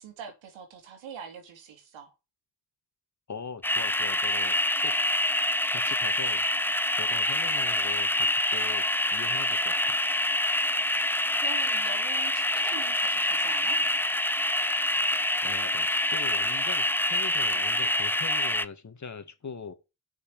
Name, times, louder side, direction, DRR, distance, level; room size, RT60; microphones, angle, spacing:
voice 1, 0.0-2.1 10.9-13.8, right 6 dB, 80° right, 3.3 m, -44 dB
voice 2, 3.3-4.5 4.8-5.0 5.7-6.4 7.0-8.8 9.1-9.9 15.4-19.7, left 5 dB, 40° left, 2.2 m, -41 dB
sound 1, 3.6-18.6, left 1 dB, 5° left, 0.7 m, -26 dB
7.3 x 6.4 x 7.8 m
supercardioid pair, 65°, 46 cm